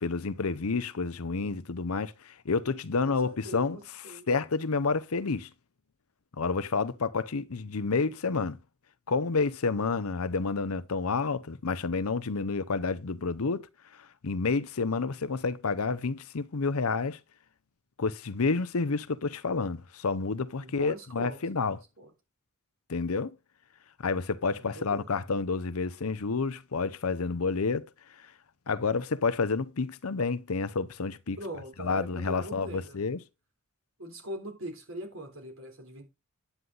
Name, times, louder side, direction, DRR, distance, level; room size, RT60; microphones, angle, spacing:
voice 1, 0.0-5.5 6.4-8.6 9.1-13.7 14.2-17.2 18.0-21.8 22.9-23.3 24.0-27.9 28.7-31.4 31.8-33.2, left 4 dB, 80° left, 0.8 m, -29 dB
voice 2, 3.1-4.3 20.6-22.1 24.6-25.1 31.4-33.1 34.0-36.0, right 1 dB, 65° right, 3.6 m, -42 dB
9.6 x 8.9 x 4.0 m
head